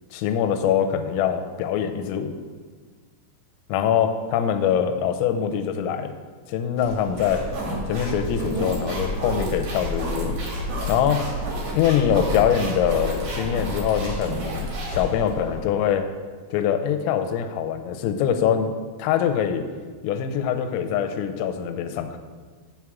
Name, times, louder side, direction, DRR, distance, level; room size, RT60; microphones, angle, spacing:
voice 1, 0.1-2.4 3.7-6.1 6.5-7.4 7.9-10.4 10.9-11.2 11.7-16.0 16.5-18.7 19.0-19.7 20.0-22.2, left 8 dB, 85° left, 7 dB, 3.3 m, -23 dB
sound 1, 6.8-15.6, equal, 55° right, 2.7 m, -30 dB
7.9 x 4.8 x 7.3 m, 1.5 s
omnidirectional pair, 6.0 m